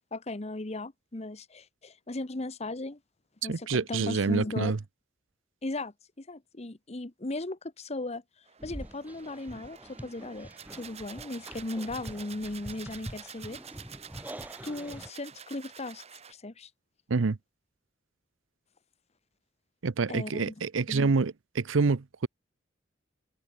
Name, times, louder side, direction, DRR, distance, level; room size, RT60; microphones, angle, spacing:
voice 1, 0.1-3.0 3.4-4.7 5.6-5.9 6.3-8.2 8.6-13.6 14.6-16.0 16.3-16.7 20.1-20.5 20.9-21.1, left 2 dB, 35° left, 1.0 m, -37 dB
voice 2, 3.5-4.8 17.1-17.4 19.8-22.3, right 4 dB, 80° right, 0.7 m, -27 dB
sound 1, 8.5-16.3, right 8 dB, 35° right, 1.1 m, -48 dB
sound 2, 8.6-15.1, equal, 10° right, 1.2 m, -45 dB
open air
head